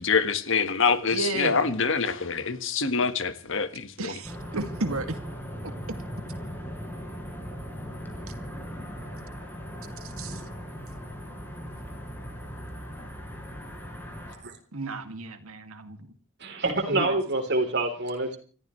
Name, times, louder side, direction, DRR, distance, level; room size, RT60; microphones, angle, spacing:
voice 1, 0.0-4.1, left 5 dB, 60° left, 10 dB, 1.6 m, -25 dB
voice 2, 1.1-1.8 4.0-5.2 10.2-10.4 14.7-16.1 16.9-17.1, right 2 dB, 85° right, 7 dB, 2.3 m, -32 dB
sound 1, 4.2-14.4, equal, 10° left, 4.8 m, -38 dB
voice 3, 16.4-18.4, right 2 dB, 55° right, 4 dB, 3.7 m, -26 dB
30.0 x 14.5 x 3.2 m, 0.39 s
head